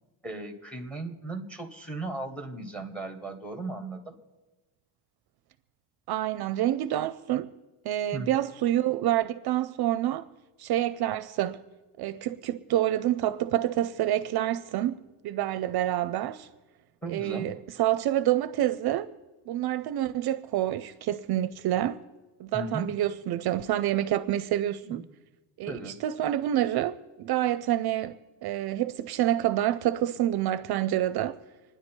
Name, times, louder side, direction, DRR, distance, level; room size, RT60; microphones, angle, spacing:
voice 1, 0.2-4.1 8.1-8.3 17.0-17.5 22.5-22.9 24.8-25.0 25.7-26.0, right 2 dB, 5° left, 1.3 m, -36 dB
voice 2, 6.1-7.5 7.8-10.3 10.6-11.6 12.0-16.5 17.1-19.1 19.5-22.0 22.4-25.0 25.6-28.1 28.4-31.4, right 13 dB, 60° right, 0.5 m, -27 dB
26.5 x 10.0 x 4.5 m
cardioid pair, 180°, 44 cm